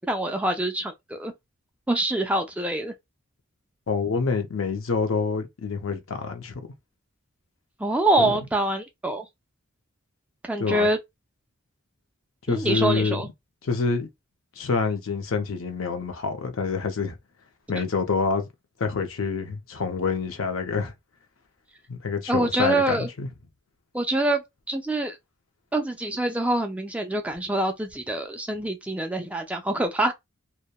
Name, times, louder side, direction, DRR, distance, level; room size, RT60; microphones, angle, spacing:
voice 1, 0.1-1.3 1.9-2.9 7.8-9.3 10.5-11.0 12.5-13.3 22.3-23.1 23.9-25.2 25.7-30.1, right 1 dB, 5° right, 0.3 m, -25 dB
voice 2, 3.9-6.7 8.2-8.3 10.6-10.9 12.5-13.2 13.6-14.1 14.6-17.2 17.7-18.5 18.8-20.9 21.9-23.3, left 4 dB, 70° left, 0.6 m, -27 dB
2.8 x 2.1 x 2.2 m
head